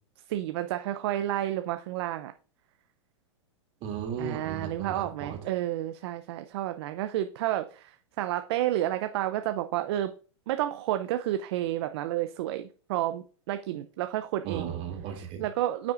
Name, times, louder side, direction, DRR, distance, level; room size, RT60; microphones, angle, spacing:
voice 1, 0.3-2.3 4.2-10.1 10.5-14.7 15.4-15.9, right 13 dB, 60° right, 9 dB, 0.5 m, -30 dB
voice 2, 3.8-5.4 14.4-15.4, right 7 dB, 40° right, 3 dB, 2.5 m, -35 dB
9.2 x 5.9 x 2.5 m, 0.39 s
hypercardioid pair, 120°, 15 cm